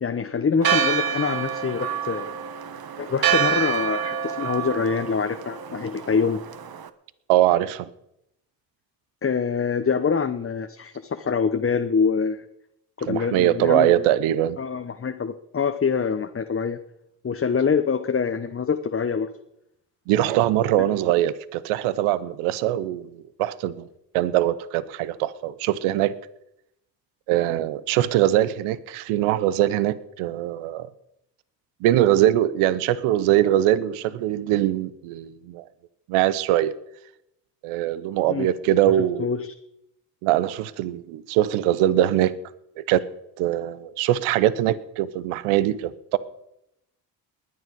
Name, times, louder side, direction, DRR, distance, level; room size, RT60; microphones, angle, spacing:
voice 1, 0.0-2.3 3.0-6.4 9.2-12.4 13.0-14.0 14.6-16.8 17.2-19.3 20.8-20.9 38.3-38.5 39.0-39.5, left 5 dB, 25° left, 7 dB, 1.0 m, -25 dB
Church bell, 0.6-6.9, right 8 dB, 45° right, 1.2 m, -27 dB
voice 2, 7.3-7.9 13.0-14.6 20.1-23.9 24.1-26.1 27.3-30.9 31.8-35.6 36.1-36.7 37.6-39.3 40.2-42.3 42.8-43.0 43.4-46.2, right 13 dB, 80° right, 17 dB, 0.9 m, -22 dB
20.0 x 9.6 x 5.3 m, 0.82 s
hypercardioid pair, 50°, 49 cm